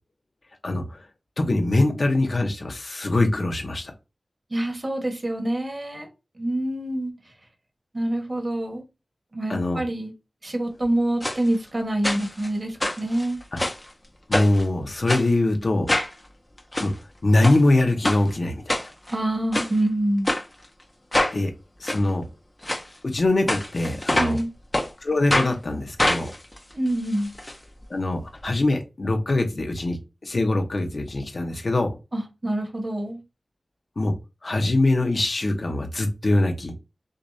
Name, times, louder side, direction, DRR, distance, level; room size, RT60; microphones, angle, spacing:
voice 1, 0.6-1.0 1.4-3.9 9.5-9.8 14.3-15.9 16.8-16.9 17.2-18.9 21.3-21.5 21.8-22.2 23.0-24.4 25.0-26.3 27.9-30.0 30.2-31.9 34.0-34.1 34.4-36.7, left 2 dB, 50° left, 1.0 m, -23 dB
voice 2, 4.5-6.1 6.4-7.1 7.9-8.8 9.3-10.1 10.4-13.4 19.1-20.3 24.1-24.5 26.7-27.3 32.1-33.2, right 1 dB, 40° right, 1.5 m, -26 dB
sound 1, 11.2-11.4 12.0-12.5 12.8-13.8 14.3-14.6 15.1-15.3 15.9-16.1 16.6-16.9 17.4-17.6 18.0-18.2 18.7-19.1 19.5-19.7 20.2-20.4 21.1-21.4 21.8-22.0 22.6-22.8 23.5-24.4 24.7-24.9 25.3-25.5 26.0-27.5 27.8-27.9 28.1-28.2, left 1 dB, 25° left, 0.8 m, -25 dB
6.5 x 2.6 x 2.8 m
wide cardioid pair, 90°, 0 cm